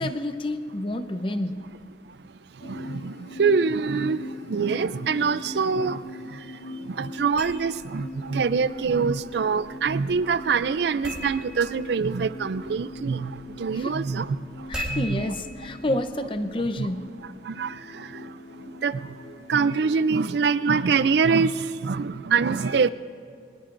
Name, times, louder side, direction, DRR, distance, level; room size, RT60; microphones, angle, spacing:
voice 1, 0.0-1.6 13.7-14.0 14.7-17.1, left 1 dB, 30° left, 9 dB, 0.7 m, -29 dB
sound 1, 2.6-20.3, left 1 dB, 70° left, 0.9 m, -41 dB
voice 2, 2.6-6.0 6.3-6.4 6.9-14.4 14.9-15.3 16.8-16.9 17.4-18.3 18.7-19.0 19.5-22.9, right 5 dB, 65° right, 15 dB, 0.4 m, -25 dB
sound 2, 7.3-17.0, equal, 5° right, 3.2 m, -42 dB
22.5 x 20.5 x 2.6 m, 2.3 s
head